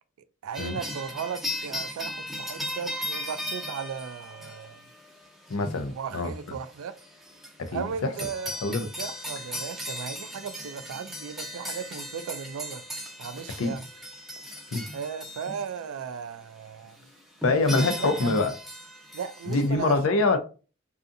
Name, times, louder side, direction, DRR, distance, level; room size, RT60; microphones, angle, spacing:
voice 1, 0.4-4.8 5.9-7.0 7.7-12.8 13.2-13.9 14.9-17.0 17.8-18.5 19.1-20.0, right 7 dB, 85° right, 0.3 m, -36 dB
sound 1, 0.5-15.8 17.0-17.1 17.4-19.7, left 1 dB, ahead, 0.4 m, -37 dB
voice 2, 5.5-6.6 7.6-8.1 8.6-8.9 13.6-13.8 14.7-14.9 17.4-18.5 19.5-20.4, left 3 dB, 85° left, 0.4 m, -25 dB
2.6 x 2.4 x 2.5 m
head